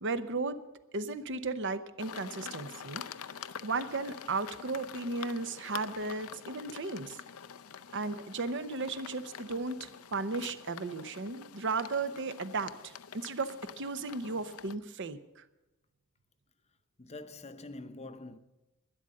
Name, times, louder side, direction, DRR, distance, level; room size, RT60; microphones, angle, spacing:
voice 1, 0.0-0.6 0.9-3.0 3.6-7.2 7.9-15.4, right 3 dB, 55° right, 0.8 m, -35 dB
sound 1, 2.0-14.8, left 8 dB, 80° left, 0.6 m, -46 dB
voice 2, 17.0-18.4, left 2 dB, 30° left, 0.7 m, -45 dB
12.5 x 10.5 x 7.6 m
head